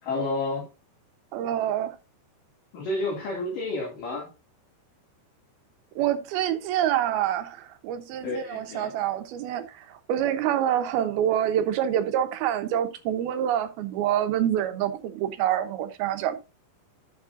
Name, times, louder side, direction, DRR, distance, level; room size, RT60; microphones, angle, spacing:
voice 1, 0.0-0.7 2.7-4.3 8.2-8.9, left 2 dB, 55° left, 3.8 m, -30 dB
voice 2, 1.3-2.0 6.0-16.4, right 11 dB, 70° right, 2.7 m, -26 dB
12.5 x 7.2 x 2.6 m
omnidirectional pair, 5.1 m